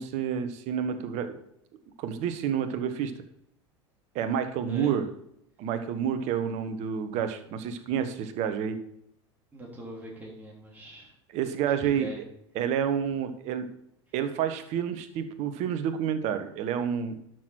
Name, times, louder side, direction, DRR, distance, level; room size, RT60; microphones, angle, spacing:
voice 1, 0.0-1.4 2.0-3.1 4.1-5.1 5.6-8.8 11.3-12.1 12.5-13.7 14.1-17.1, right 8 dB, 50° right, 9 dB, 1.2 m, -29 dB
voice 2, 9.5-11.1 11.8-12.2, equal, 10° right, -4 dB, 3.5 m, -42 dB
12.0 x 6.3 x 4.5 m, 0.74 s
figure-of-eight pair, 80°, 15 cm